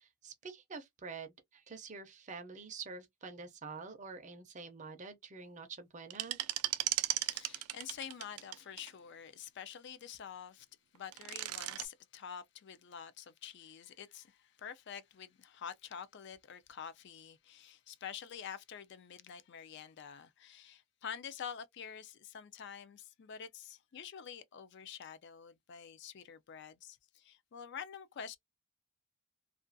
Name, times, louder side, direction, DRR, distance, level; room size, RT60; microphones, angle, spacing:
voice 1, 0.0-6.4, right 4 dB, 35° right, 0.5 m, -47 dB
sound 1, 6.1-8.9 10.9-11.9, right 15 dB, 90° right, 0.3 m, -36 dB
voice 2, 7.2-10.7 10.9-28.4, left 8 dB, 50° left, 0.3 m, -47 dB
2.4 x 2.2 x 2.5 m
head